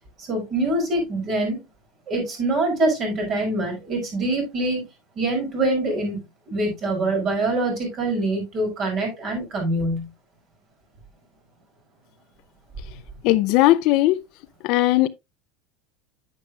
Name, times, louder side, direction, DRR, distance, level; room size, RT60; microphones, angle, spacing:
voice 1, 0.2-1.6 2.1-4.8 5.2-6.2 6.5-10.1, right 2 dB, 35° right, 5.7 m, -24 dB
voice 2, 13.2-14.2 14.6-15.1, left 16 dB, 55° left, 0.5 m, -18 dB
9.2 x 9.1 x 2.4 m
supercardioid pair, 150°, 0 cm